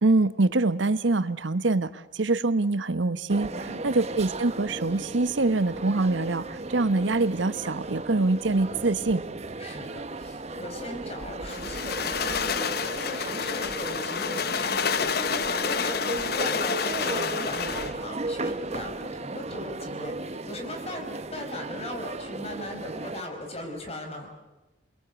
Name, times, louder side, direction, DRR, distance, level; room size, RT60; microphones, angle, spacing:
voice 1, 0.0-3.5 3.8-9.2, right 3 dB, 90° right, 14 dB, 1.0 m, -24 dB
sound 1, 3.3-23.2, right 2 dB, 35° right, 0.9 m, -36 dB
voice 2, 3.5-3.8 9.6-24.3, left 1 dB, 35° left, 5 dB, 4.9 m, -39 dB
sound 2, 11.5-18.0, left 6 dB, 55° left, 0.9 m, -29 dB
28.5 x 21.5 x 8.1 m, 1.1 s
head